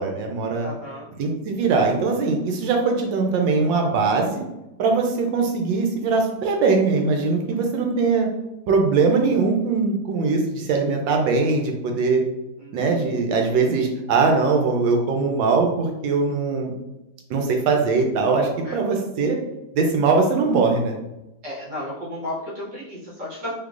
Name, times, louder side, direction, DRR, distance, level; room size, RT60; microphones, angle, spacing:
voice 1, 0.0-0.7 1.2-4.4 4.8-8.3 8.7-12.2 12.7-16.7 17.3-19.4 19.7-21.0, right 4 dB, 85° right, 2 dB, 1.4 m, -21 dB
voice 2, 0.6-1.1 12.6-13.2 18.6-18.7 21.4-23.5, left 1 dB, 65° right, -7 dB, 1.8 m, -34 dB
3.7 x 2.8 x 2.4 m, 0.95 s
omnidirectional pair, 2.0 m